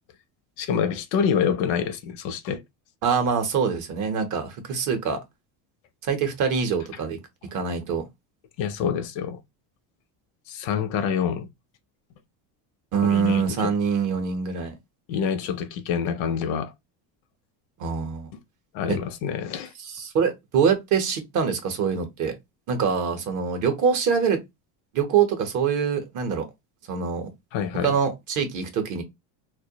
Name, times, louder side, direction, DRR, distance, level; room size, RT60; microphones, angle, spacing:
voice 1, 0.6-2.6 8.6-9.4 10.5-11.5 13.0-13.7 15.1-16.7 18.7-19.7 27.5-28.0, left 7 dB, 70° left, 0.6 m, -26 dB
voice 2, 3.0-5.2 6.0-7.2 7.5-8.1 12.9-14.7 17.8-18.3 18.9-19.0 19.8-22.3 22.7-24.4 24.9-26.5 26.9-27.3 27.8-29.0, right 6 dB, 40° right, 0.6 m, -24 dB
2.1 x 2.1 x 2.7 m
cardioid pair, 145°, 47 cm